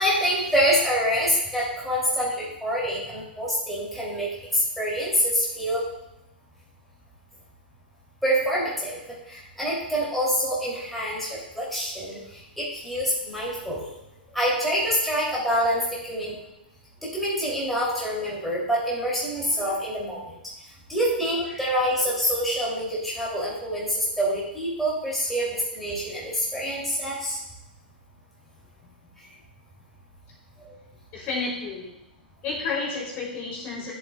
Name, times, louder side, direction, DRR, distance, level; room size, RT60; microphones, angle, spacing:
voice 1, 0.0-4.3 4.8-5.8 8.2-9.0 9.3-11.3 11.5-12.2 12.6-13.8 14.3-15.8 16.1-16.3 17.1-20.2 20.9-27.4, equal, ahead, -8 dB, 3.1 m, -26 dB
voice 2, 31.1-31.9 32.4-33.9, left 4 dB, 35° left, -4 dB, 3.5 m, -31 dB
12.5 x 7.7 x 2.4 m, 0.89 s
figure-of-eight pair, 120°, 5 cm